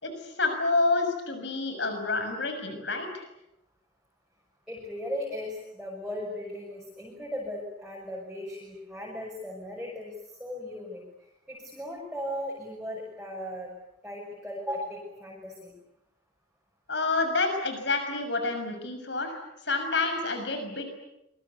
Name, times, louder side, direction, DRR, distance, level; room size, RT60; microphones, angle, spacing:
voice 1, 0.0-3.3 16.9-20.9, left 3 dB, 65° left, 6 dB, 6.4 m, -28 dB
voice 2, 4.7-10.1 10.4-11.0 11.5-13.7 14.0-15.7, left 1 dB, 5° right, -3 dB, 6.2 m, -37 dB
27.5 x 23.0 x 8.4 m, 0.87 s
head